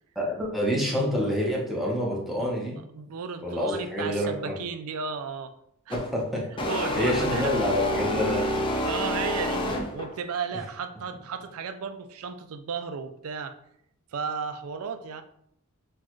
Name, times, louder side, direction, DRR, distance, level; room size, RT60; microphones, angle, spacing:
voice 1, 0.1-2.8 3.4-4.6 5.9-6.4 6.9-8.4, equal, ahead, -4 dB, 0.9 m, -27 dB
voice 2, 2.9-5.5 5.9-6.0 6.7-7.6 8.8-9.7 9.9-13.6 14.1-15.2, right 5 dB, 70° right, 9 dB, 0.4 m, -34 dB
sound 1, 5.9-6.1 6.6-10.2, left 1 dB, 20° left, 0.6 m, -28 dB
6.2 x 2.4 x 3.1 m, 0.72 s
head